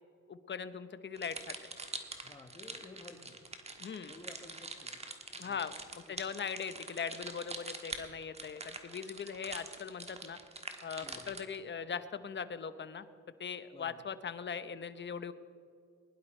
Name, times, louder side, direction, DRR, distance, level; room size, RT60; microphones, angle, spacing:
voice 1, 0.3-1.5 3.8-4.1 5.4-10.4 10.8-13.0 13.4-15.3, left 6 dB, 40° left, 12 dB, 0.9 m, -40 dB
sound 1, 1.2-11.6, right 3 dB, 20° right, 1.5 m, -45 dB
voice 2, 2.2-3.8 4.1-5.1 5.3-5.6 6.1-6.2 11.0-11.4 13.7-14.0, left 2 dB, 20° left, 4 dB, 1.5 m, -54 dB
21.0 x 11.0 x 4.4 m, 2.2 s
cardioid pair, 90°, 30 cm